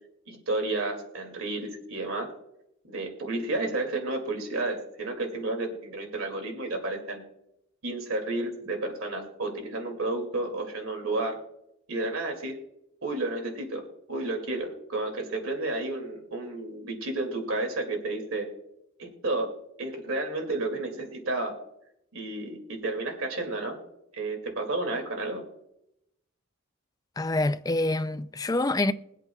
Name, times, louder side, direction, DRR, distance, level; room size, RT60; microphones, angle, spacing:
voice 1, 0.3-2.3 2.9-7.2 7.8-11.3 11.9-12.6 13.0-13.8 14.1-18.5 19.0-21.6 22.1-23.8 24.1-25.4, right 2 dB, 80° right, 2.4 m, -31 dB
voice 2, 27.2-28.9, left 2 dB, 15° left, 0.4 m, -26 dB
22.5 x 8.1 x 2.3 m
head